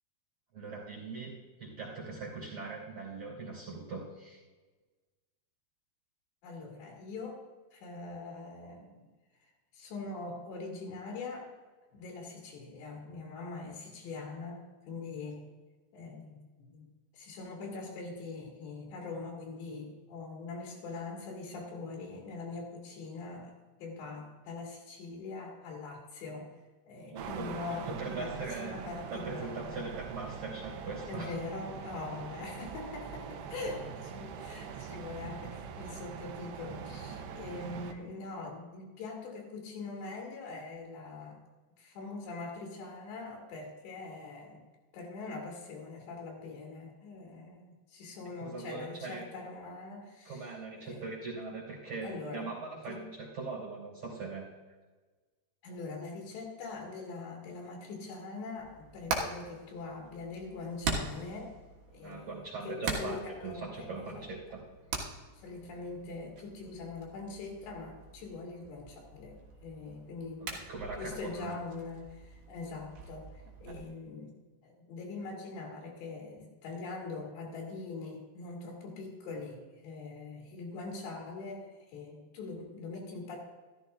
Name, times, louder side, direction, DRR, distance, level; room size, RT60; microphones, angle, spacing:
voice 1, 0.5-1.3 1.6-4.4 27.1-27.5 27.9-28.7 29.1-31.3 48.4-49.2 50.3-54.5 62.0-64.6 65.1-65.2 70.4-71.5, right 3 dB, 35° right, -6 dB, 3.6 m, -41 dB
voice 2, 6.4-7.4 7.7-9.0 9.7-11.5 11.9-15.5 15.9-23.5 23.8-26.5 26.9-29.8 31.1-41.4 41.8-44.6 44.9-50.6 50.8-51.1 52.0-53.0 55.6-61.6 61.9-64.3 65.4-70.7 71.0-74.3 74.6-83.4, left 3 dB, 85° left, -1 dB, 4.7 m, -43 dB
sound 1, 27.2-37.9, right 7 dB, 85° right, 3.0 m, -43 dB
Hammer, 58.6-73.8, right 4 dB, 70° right, 3.2 m, -42 dB
14.0 x 13.5 x 2.5 m, 1.3 s
omnidirectional pair, 4.8 m